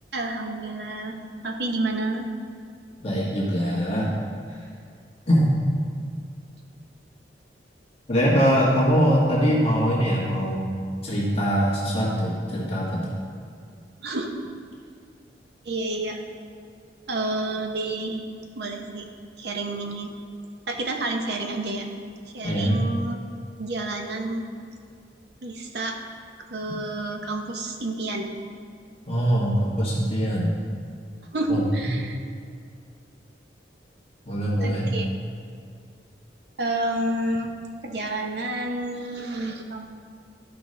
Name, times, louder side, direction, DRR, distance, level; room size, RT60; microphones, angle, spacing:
voice 1, 0.1-1.2 1.4-2.3 14.0-14.3 15.6-16.2 17.1-18.2 18.6-19.1 19.4-20.2 20.7-21.9 22.3-23.2 23.6-24.5 25.4-26.0 26.5-28.3 31.3-32.2 34.6-35.1 36.6-37.5 37.8-39.9, right 2 dB, 65° right, 3 dB, 0.8 m, -29 dB
voice 2, 3.0-4.1 4.5-4.6 5.3-5.5 8.1-10.7 11.0-13.0 22.4-22.8 29.1-30.6 31.5-31.6 34.3-34.9, equal, 35° left, -6 dB, 1.3 m, -22 dB
12.0 x 5.2 x 3.2 m, 2.3 s
head